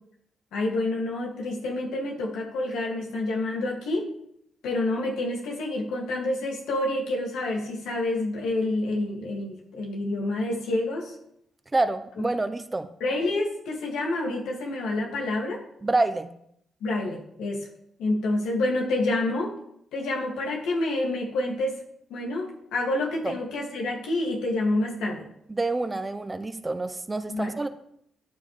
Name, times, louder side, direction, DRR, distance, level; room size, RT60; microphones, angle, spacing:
voice 1, 0.5-4.1 4.6-11.2 12.2-12.3 13.0-15.6 16.8-17.7 18.0-19.5 19.9-21.8 22.1-25.3 27.3-27.5, left 2 dB, 90° left, -1 dB, 2.2 m, -28 dB
voice 2, 11.7-12.9 15.8-16.3 23.2-23.3 25.5-27.7, right 2 dB, 20° right, 9 dB, 0.8 m, -27 dB
13.0 x 9.3 x 3.3 m, 0.73 s
cardioid pair, 75°, 0 cm